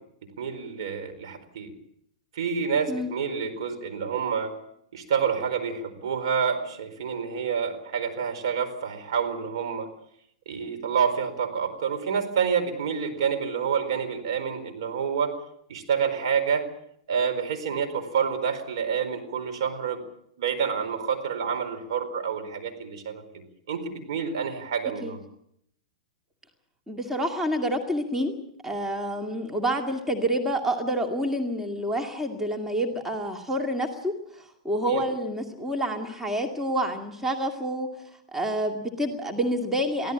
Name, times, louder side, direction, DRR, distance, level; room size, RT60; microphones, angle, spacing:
voice 1, 0.4-1.7 2.3-4.5 4.9-9.9 10.5-15.3 15.7-16.7 17.1-20.0 20.4-23.2 23.7-25.2 34.9-35.0, right 6 dB, 60° right, 5 dB, 4.5 m, -28 dB
voice 2, 26.9-28.3 28.6-37.9 38.3-40.1, right 1 dB, 10° right, 4 dB, 2.3 m, -28 dB
23.5 x 16.0 x 8.7 m, 0.73 s
figure-of-eight pair, 105°, 3 cm